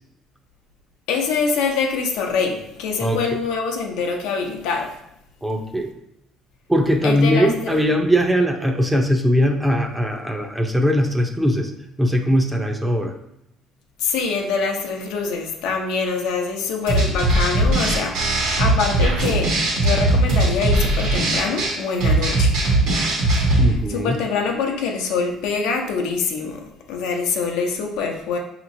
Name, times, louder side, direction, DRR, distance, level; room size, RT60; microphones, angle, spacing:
voice 1, 1.1-5.0 7.0-7.8 14.0-22.6 23.4-28.4, left 5 dB, 85° left, 2 dB, 0.6 m, -25 dB
voice 2, 5.4-5.9 6.7-11.7 12.0-13.1 23.6-24.2, equal, 10° right, 3 dB, 0.5 m, -20 dB
sound 1, 16.9-23.7, right 2 dB, 85° right, 1.2 m, -19 dB
5.1 x 2.9 x 2.6 m, 0.80 s
cardioid pair, 105°, 0 cm